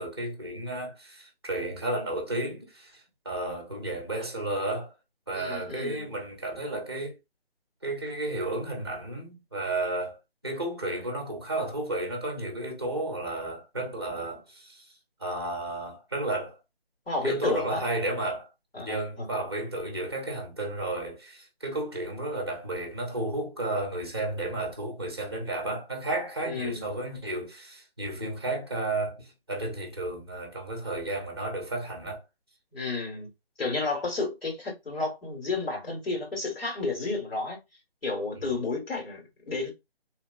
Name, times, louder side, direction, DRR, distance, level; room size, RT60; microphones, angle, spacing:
voice 1, 0.0-4.9 5.3-7.2 7.8-14.9 15.2-16.6 17.2-18.5 18.8-32.2 38.3-38.6, right 2 dB, 25° right, 0.6 m, -33 dB
voice 2, 5.3-6.1 17.1-17.8 18.7-19.3 26.4-26.9 32.7-33.3 33.6-37.6 38.0-39.7, left 3 dB, 70° left, 1.8 m, -31 dB
2.9 x 2.2 x 2.4 m
figure-of-eight pair, 175°, 31 cm